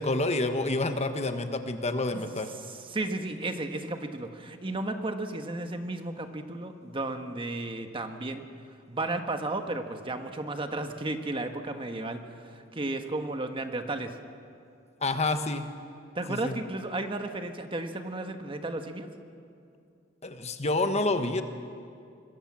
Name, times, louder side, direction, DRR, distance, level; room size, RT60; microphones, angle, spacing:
voice 1, 0.0-2.5 15.0-15.6 16.3-16.6 20.2-21.4, left 2 dB, 35° left, 7 dB, 1.3 m, -28 dB
voice 2, 2.7-8.5 8.9-14.2 16.1-19.1, right 2 dB, 25° right, 6 dB, 1.4 m, -34 dB
26.0 x 21.5 x 7.5 m, 2.4 s
head